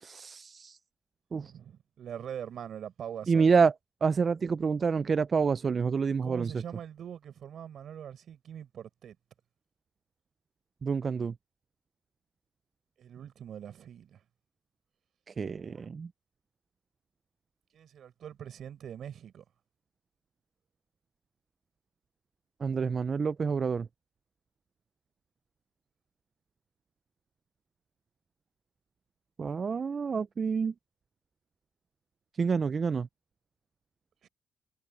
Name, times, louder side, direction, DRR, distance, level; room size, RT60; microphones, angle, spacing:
voice 1, 0.0-0.8 1.3-1.5 3.3-3.7 4.0-6.5 10.8-11.3 15.3-16.1 22.6-23.9 29.4-30.7 32.4-33.1, right 5 dB, 40° right, 0.4 m, -28 dB
voice 2, 1.3-3.5 6.2-9.2 13.0-14.2 17.7-19.4 34.2-34.3, right 9 dB, 65° right, 6.5 m, -43 dB
cardioid pair, 90°, 0 cm